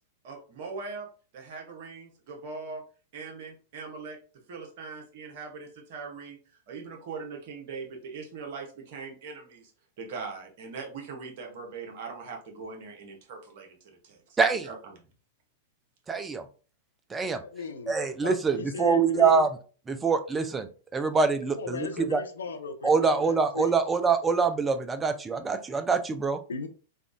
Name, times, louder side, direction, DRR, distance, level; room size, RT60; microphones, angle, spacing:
voice 1, 0.2-1.1 1.3-2.8 3.1-4.2 4.5-6.4 6.7-9.7 10.0-14.4 14.6-15.1, right 4 dB, 55° right, 2 dB, 0.9 m, -41 dB
voice 2, 14.4-14.7 16.1-16.4 17.1-17.4 17.9-19.5 19.9-20.7 20.9-22.2 22.8-26.4, right 5 dB, 15° right, 9 dB, 0.4 m, -25 dB
voice 3, 17.5-17.9 18.2-19.5 21.5-23.7 26.5-26.7, left 4 dB, 75° left, 6 dB, 0.5 m, -35 dB
3.4 x 2.3 x 2.5 m, 0.38 s
figure-of-eight pair, 95°, 0 cm